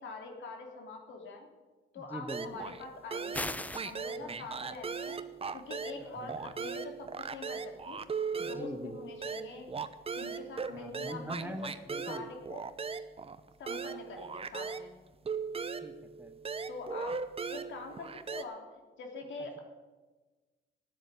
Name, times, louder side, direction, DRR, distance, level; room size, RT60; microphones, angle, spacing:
voice 1, 0.0-1.5 1.9-3.5 3.8-5.2 5.5-8.0 8.4-9.7 10.1-11.5 12.0-12.6 13.6-14.9 16.7-17.1 17.5-18.6 19.0-19.6, left 3 dB, 70° left, 2 dB, 3.3 m, -44 dB
voice 2, 2.0-2.7 4.2-4.4 6.0-6.4 8.4-9.0 10.7-12.2 15.8-16.3, right 1 dB, 10° right, 8 dB, 1.2 m, -43 dB
sound 1, 2.3-2.8 3.1-6.0 6.3-14.9 15.3-18.4, right 5 dB, 30° right, 0.9 m, -38 dB
sound 2, 3.3-3.9, left 1 dB, 5° left, 0.5 m, -36 dB
12.5 x 9.5 x 9.3 m, 1.3 s
cardioid pair, 90°, 20 cm